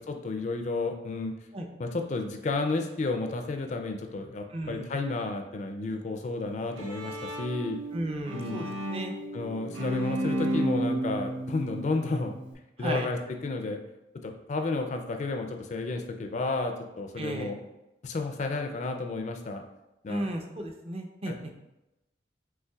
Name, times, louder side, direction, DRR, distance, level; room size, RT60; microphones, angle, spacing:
voice 1, 0.0-1.3 1.8-7.8 8.3-8.8 9.3-12.4 12.8-13.8 14.2-17.6 18.0-19.6 20.0-20.3 21.3-21.5, left 3 dB, 40° left, 5 dB, 0.4 m, -32 dB
voice 2, 4.5-4.9 7.9-9.1 12.8-13.1 17.2-17.6 20.1-21.4, right 1 dB, 30° right, 3 dB, 0.5 m, -34 dB
Bowed string instrument, 6.4-12.5, right 1 dB, 85° right, 0.8 m, -33 dB
5.6 x 3.1 x 2.3 m, 0.94 s
head